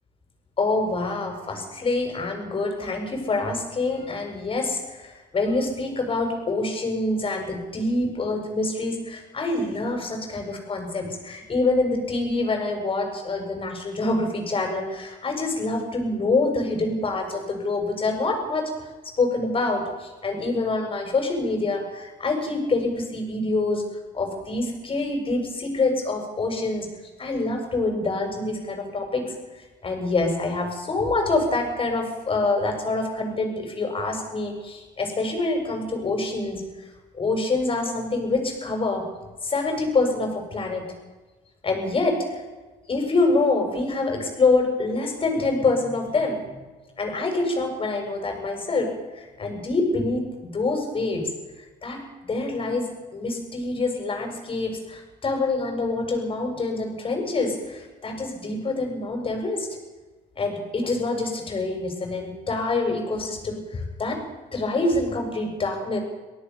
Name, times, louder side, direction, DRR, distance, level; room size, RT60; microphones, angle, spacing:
voice 1, 0.6-18.7 19.2-23.8 24.1-26.9 27.2-29.3 29.8-36.6 37.1-39.1 39.4-40.8 41.6-42.4 42.9-46.4 47.0-51.3 51.8-59.7 60.4-64.2 64.5-66.0, left 3 dB, 30° left, 3 dB, 7.4 m, -26 dB
24.0 x 17.0 x 7.3 m, 1.2 s
cardioid pair, 110°, 17 cm